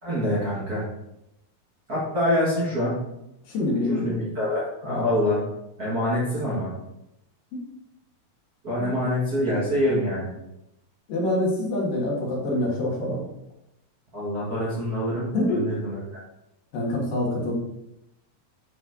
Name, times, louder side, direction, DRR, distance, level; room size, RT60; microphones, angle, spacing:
voice 1, 0.0-0.8 1.9-3.0 3.9-5.4 5.8-6.7 8.6-10.3 14.1-16.2, equal, 35° right, -8 dB, 1.8 m, -25 dB
voice 2, 3.5-4.2 4.8-5.1 7.5-7.6 8.8-8.9 11.1-13.2 15.3-15.6 16.7-17.5, left 1 dB, 75° left, -3 dB, 3.4 m, -26 dB
10.5 x 4.4 x 2.8 m, 0.86 s
omnidirectional pair, 4.0 m